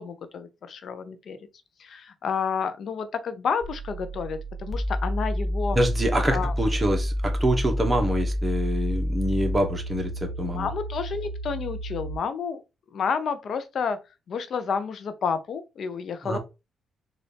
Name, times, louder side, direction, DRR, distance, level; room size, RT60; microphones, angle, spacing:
voice 1, 0.0-1.4 1.8-5.8 6.3-6.5 10.5-12.6 12.9-14.0 14.3-16.4, left 6 dB, 60° left, 0.6 m, -30 dB
sound 1, 3.6-12.2, equal, 35° left, 0.8 m, -29 dB
voice 2, 5.7-10.7 16.2-16.4, right 1 dB, 20° right, 1.2 m, -26 dB
4.0 x 2.5 x 3.4 m
cardioid pair, 85°, 0 cm